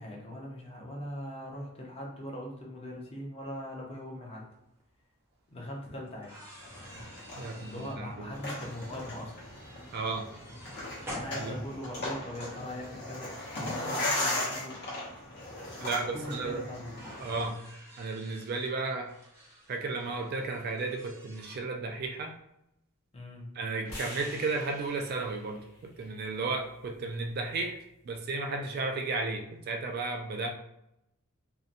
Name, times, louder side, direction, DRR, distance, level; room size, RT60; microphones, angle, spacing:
voice 1, 0.0-4.4 5.5-6.3 7.7-9.3 11.1-14.8 15.8-17.0 23.1-23.5, left 1 dB, 25° left, -2 dB, 0.6 m, -40 dB
sound 1, 4.8-4.9 6.1-12.0 13.3-13.4 15.2-15.3 15.6-15.7 16.9-21.6, equal, 10° right, 0.6 m, -50 dB
sound 2, 6.6-17.5, left 1 dB, 50° left, 0.9 m, -37 dB
voice 2, 7.3-8.4 9.9-10.3 11.3-11.5 15.8-16.6 17.2-17.6 18.0-19.1 19.7-22.4 23.5-27.8 28.0-30.5, right 3 dB, 45° right, 3 dB, 0.3 m, -34 dB
sound 3, 23.8-28.0, left 1 dB, 80° left, 0.9 m, -48 dB
2.7 x 2.1 x 2.5 m, 0.81 s
head